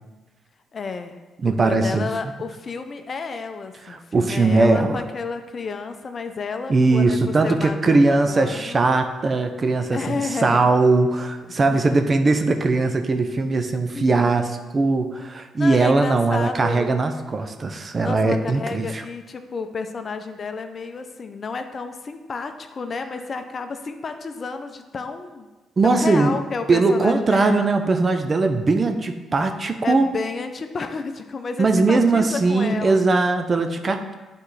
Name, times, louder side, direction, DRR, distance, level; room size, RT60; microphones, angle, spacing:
voice 1, 0.7-1.2 1.4-8.8 9.9-10.6 11.5-11.8 13.9-14.3 15.6-17.0 18.0-25.5 25.8-27.7 29.8-33.0, left 4 dB, 50° left, 8 dB, 0.6 m, -31 dB
voice 2, 1.4-2.1 3.9-5.0 6.7-19.0 25.8-26.4 26.7-30.1 31.6-34.1, right 3 dB, 40° right, 7 dB, 0.7 m, -20 dB
9.4 x 4.3 x 3.3 m, 1.2 s
supercardioid pair, 55°, 0 cm